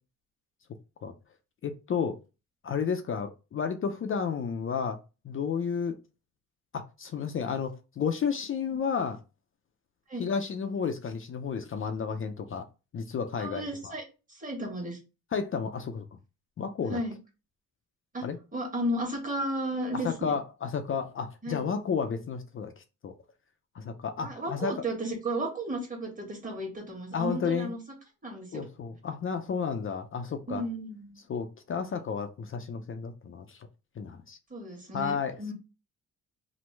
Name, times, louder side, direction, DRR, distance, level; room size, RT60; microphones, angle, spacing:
voice 1, 1.6-2.2 2.6-5.0 5.2-6.0 6.7-9.2 10.2-12.7 12.9-13.9 15.3-16.0 16.6-17.0 18.2-18.4 20.0-22.7 23.0-23.1 23.7-24.8 27.1-27.7 28.5-30.6 31.3-33.6 34.0-34.4 34.9-35.5, left 6 dB, 40° left, 0.5 m, -32 dB
voice 2, 13.4-14.0 14.3-15.0 16.9-17.2 18.1-20.3 21.4-21.6 24.2-27.8 28.2-28.6 30.5-31.2 34.5-35.5, right 1 dB, 25° right, 1.4 m, -34 dB
3.1 x 2.1 x 3.2 m
cardioid pair, 75°, 33 cm